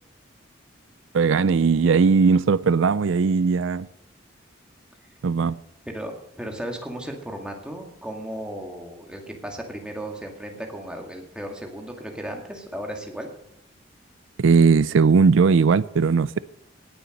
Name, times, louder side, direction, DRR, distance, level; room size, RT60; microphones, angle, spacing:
voice 1, 1.1-3.9 5.2-5.6 14.4-16.4, right 5 dB, 90° right, 0.4 m, -18 dB
voice 2, 5.9-13.3, right 1 dB, 5° right, 2.1 m, -35 dB
18.5 x 7.0 x 6.5 m
head